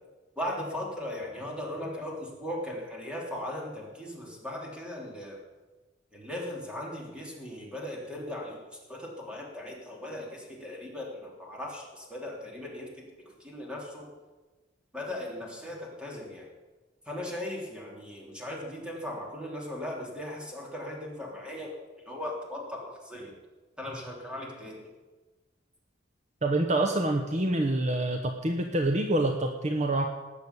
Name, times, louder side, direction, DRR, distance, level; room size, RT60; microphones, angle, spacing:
voice 1, 0.4-5.4 6.1-8.6 8.9-13.1 13.4-14.1 14.9-16.4 17.1-21.7 22.0-23.3 23.8-24.8, left 1 dB, 5° right, -2 dB, 3.3 m, -38 dB
voice 2, 26.4-30.1, right 1 dB, 40° right, 4 dB, 1.0 m, -26 dB
19.0 x 7.0 x 8.3 m, 1.2 s
head